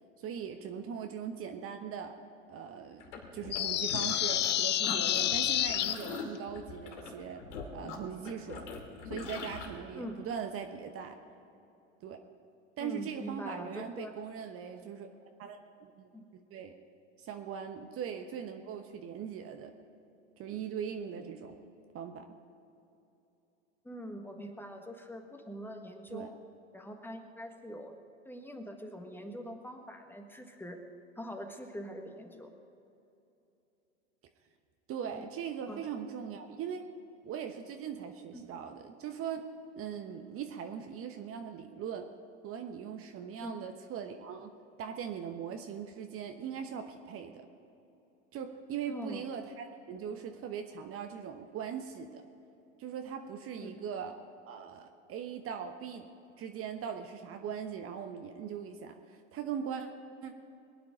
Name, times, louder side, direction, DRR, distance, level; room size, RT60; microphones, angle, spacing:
voice 1, 0.2-2.1 2.5-3.0 3.3-7.4 7.7-8.7 9.0-11.1 12.0-12.2 12.8-15.1 15.4-16.1 16.5-16.7 17.2-19.7 20.4-21.6 21.9-22.2 26.1-26.3 34.9-36.9 37.2-39.5 39.7-42.1 42.4-47.5 48.3-52.2 52.8-54.1 54.5-56.1 56.4-59.9 60.2-60.3, right 7 dB, 35° right, 6 dB, 1.1 m, -40 dB
sound 1, 3.0-4.5 4.8-9.7, left 5 dB, 70° left, 2.6 m, -42 dB
sound 2, 3.5-5.9, left 12 dB, 30° left, 0.6 m, -29 dB
voice 2, 12.8-14.2 16.1-16.2 23.8-26.4 26.7-28.0 28.2-30.8 31.1-32.5 35.1-35.2 35.7-35.9 38.3-38.5 43.4-43.6 48.9-49.2 53.6-53.7, equal, 5° left, 4 dB, 1.5 m, -43 dB
22.5 x 9.5 x 5.1 m, 2.8 s
hypercardioid pair, 85°, 37 cm